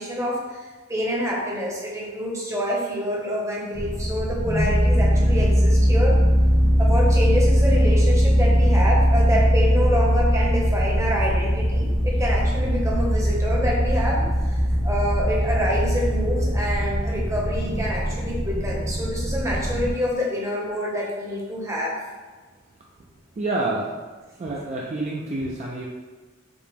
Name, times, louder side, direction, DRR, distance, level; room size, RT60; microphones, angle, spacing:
voice 1, 0.0-6.2 6.8-21.9, equal, 15° right, -3 dB, 0.7 m, -27 dB
sound 1, 3.7-19.9, equal, 55° right, 1.2 m, -20 dB
voice 2, 23.4-24.0 24.4-25.9, right 2 dB, 35° right, -3 dB, 0.3 m, -28 dB
5.0 x 2.1 x 3.4 m, 1.4 s
head